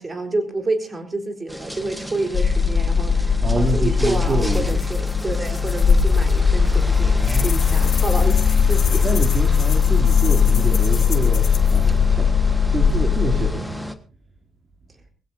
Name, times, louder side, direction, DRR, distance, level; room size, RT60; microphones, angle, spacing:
voice 1, 0.0-9.1, right 2 dB, 25° right, 4 dB, 3.9 m, -29 dB
sound 1, 1.5-14.0, equal, 5° right, 1.4 m, -33 dB
sound 2, 2.3-13.5, left 6 dB, 45° left, 4.6 m, -18 dB
voice 2, 3.4-4.7 7.2-7.9 9.0-13.7, right 3 dB, 45° right, 2 dB, 2.9 m, -27 dB
sound 3, 4.1-6.4 6.7-11.9, left 8 dB, 65° left, 1.8 m, -35 dB
22.0 x 16.5 x 2.7 m, 0.36 s
cardioid pair, 100°, 0 cm